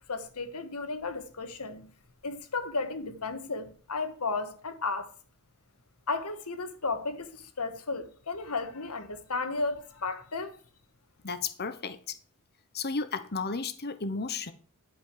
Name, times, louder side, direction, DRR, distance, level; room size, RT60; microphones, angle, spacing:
voice 1, 0.1-1.9 2.2-5.1 6.1-10.6, left 3 dB, 90° left, 1.5 m, -34 dB
voice 2, 11.2-12.1 12.7-14.5, left 4 dB, 45° left, 1.1 m, -33 dB
11.5 x 5.4 x 7.5 m
head